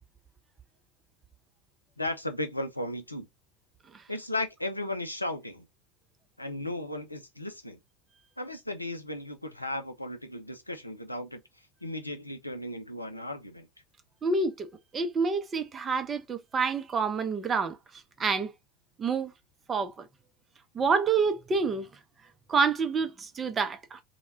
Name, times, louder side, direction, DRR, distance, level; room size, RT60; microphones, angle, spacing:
voice 1, 2.0-3.3 4.1-5.7 6.4-7.8 8.4-11.4 11.8-13.7, left 1 dB, 90° left, 0.4 m, -35 dB
voice 2, 14.2-14.7 14.9-18.5 19.0-19.3 19.7-20.1 20.7-21.9 22.5-24.0, right 4 dB, 25° right, 0.5 m, -28 dB
2.1 x 2.1 x 3.2 m
figure-of-eight pair, 75°, 0 cm